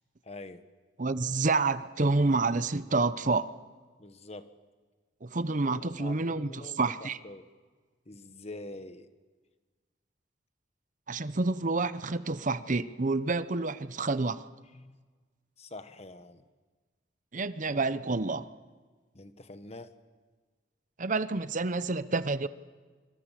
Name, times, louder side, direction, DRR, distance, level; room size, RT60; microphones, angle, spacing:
voice 1, 0.2-0.6 4.0-4.5 5.7-7.4 8.1-9.1 14.7-15.0 15.6-16.4 19.1-19.9, left 2 dB, 35° left, 1.4 m, -45 dB
voice 2, 1.0-3.5 5.2-7.2 11.1-14.5 17.3-18.5 21.0-22.5, right 3 dB, 45° right, 0.8 m, -28 dB
26.0 x 25.5 x 7.5 m
head